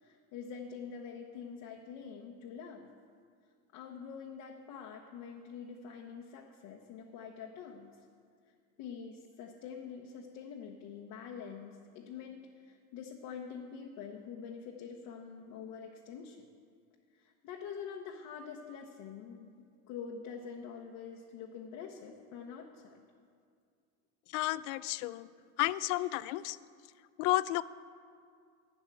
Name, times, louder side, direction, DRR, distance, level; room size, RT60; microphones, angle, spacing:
voice 1, 0.0-2.9 3.7-7.9 8.8-16.4 17.2-23.0, left 6 dB, 65° left, 0 dB, 1.1 m, -46 dB
voice 2, 24.3-25.3 25.6-26.6 27.2-27.6, left 18 dB, 80° left, 18 dB, 0.5 m, -31 dB
12.0 x 6.0 x 9.0 m, 2.2 s
supercardioid pair, 120°, 35 cm